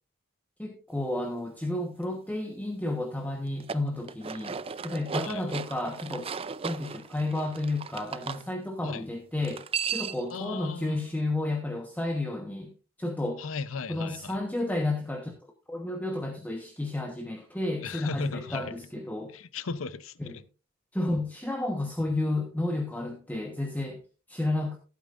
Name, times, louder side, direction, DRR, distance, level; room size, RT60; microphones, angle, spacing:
voice 1, 0.6-6.3 6.6-9.6 9.9-12.7 13.0-13.4 13.9-15.4 15.7-19.3 20.2-20.4 20.9-24.0 24.3-24.8, left 2 dB, 10° left, 1.2 m, -31 dB
sound 1, 3.5-8.4 9.4-10.3, right 6 dB, 30° right, 0.4 m, -36 dB
voice 2, 10.3-11.1 13.4-14.4 17.8-18.7 19.3-20.4, left 4 dB, 85° left, 0.7 m, -35 dB
15.5 x 8.5 x 2.5 m
head